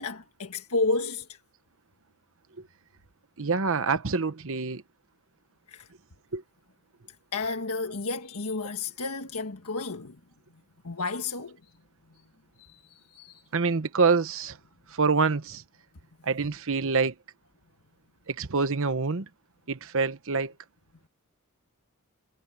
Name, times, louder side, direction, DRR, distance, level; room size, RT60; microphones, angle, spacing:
voice 1, 0.0-1.4 5.7-5.9 7.3-10.2 10.8-11.6 12.6-13.4, left 3 dB, 80° left, 1.6 m, -31 dB
voice 2, 3.4-4.8 6.3-6.4 13.5-14.6 14.9-15.6 16.2-17.1 18.3-19.2 19.7-20.5, right 4 dB, 60° right, 1.0 m, -26 dB
head